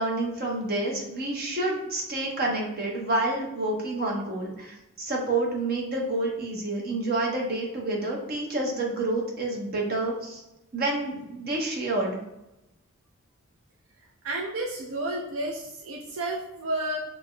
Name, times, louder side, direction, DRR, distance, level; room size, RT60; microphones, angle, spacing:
voice 1, 0.0-10.4 10.7-12.2, right 2 dB, 45° right, -2 dB, 1.0 m, -28 dB
voice 2, 14.2-17.0, right 1 dB, 75° right, -1 dB, 0.5 m, -31 dB
5.8 x 2.8 x 2.2 m, 0.91 s
head